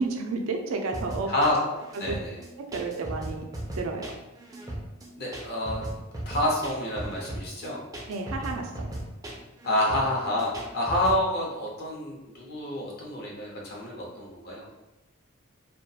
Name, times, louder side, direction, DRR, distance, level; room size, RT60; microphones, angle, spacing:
voice 1, 0.0-1.3 1.9-2.2 2.7-3.5 3.7-4.1 8.1-8.9, right 3 dB, 85° right, 3 dB, 0.4 m, -31 dB
sound 1, 0.9-11.2, right 1 dB, 15° right, 0.4 m, -37 dB
voice 2, 1.3-2.4 5.2-5.8 6.3-7.8 9.6-14.7, left 1 dB, 50° left, -3 dB, 0.7 m, -28 dB
2.3 x 2.2 x 2.7 m, 1.0 s
head